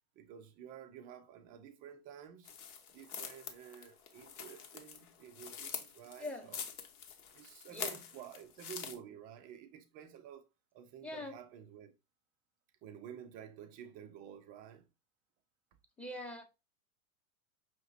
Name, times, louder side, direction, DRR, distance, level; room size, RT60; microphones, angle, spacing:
voice 1, 0.1-2.5 2.9-6.6 7.3-11.9 12.8-14.9, right 9 dB, 20° right, 0.3 m, -51 dB
sound 1, 2.4-8.9, left 7 dB, 65° left, 1.1 m, -46 dB
voice 2, 6.2-6.5 7.7-7.9 11.0-11.4 16.0-16.4, left 1 dB, 5° left, 0.8 m, -43 dB
5.7 x 2.9 x 2.6 m
hypercardioid pair, 110°, 45 cm